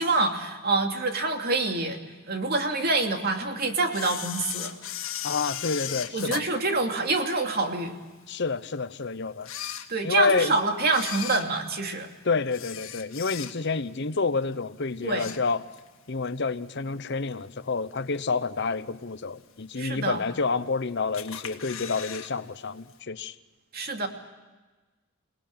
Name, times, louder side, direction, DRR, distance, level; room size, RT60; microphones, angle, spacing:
voice 1, 0.0-2.0 2.3-4.8 6.1-7.9 9.9-12.1 15.0-15.3 19.8-20.2 23.7-24.1, right 3 dB, 50° right, 4 dB, 2.6 m, -26 dB
Camera, 3.9-7.5 8.0-8.1 8.8-8.9 9.3-10.4 10.8-13.9 14.2-14.5 14.9-15.9 16.2-16.3 17.3-17.4 18.0-18.4 18.8-18.9 19.1-19.2 19.3-19.4 20.2-20.7 21.1-22.3 22.6-22.7 22.9-23.0, left 10 dB, 90° left, 1.8 m, -37 dB
voice 2, 5.2-6.4 8.3-9.5 10.0-10.6 12.2-15.7 16.1-23.3, left 4 dB, 60° left, 13 dB, 0.9 m, -28 dB
28.5 x 19.0 x 8.7 m, 1.2 s
head